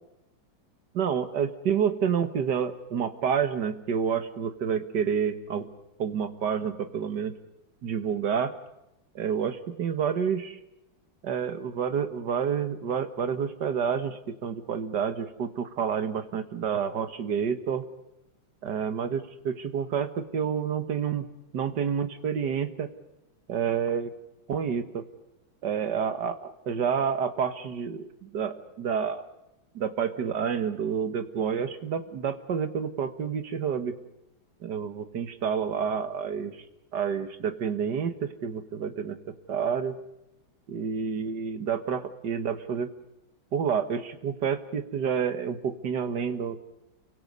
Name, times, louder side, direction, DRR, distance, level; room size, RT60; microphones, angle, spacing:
voice 1, 0.9-5.7 6.0-7.4 7.8-8.5 9.2-10.6 11.2-17.9 18.6-21.3 21.5-22.9 23.5-24.1 24.5-25.1 25.6-29.2 29.8-33.9 34.6-36.6 36.9-39.2 39.5-40.0 40.7-42.9 43.5-46.6, right 7 dB, 55° right, 10 dB, 1.9 m, -29 dB
30.0 x 24.0 x 5.4 m, 0.86 s
omnidirectional pair, 2.3 m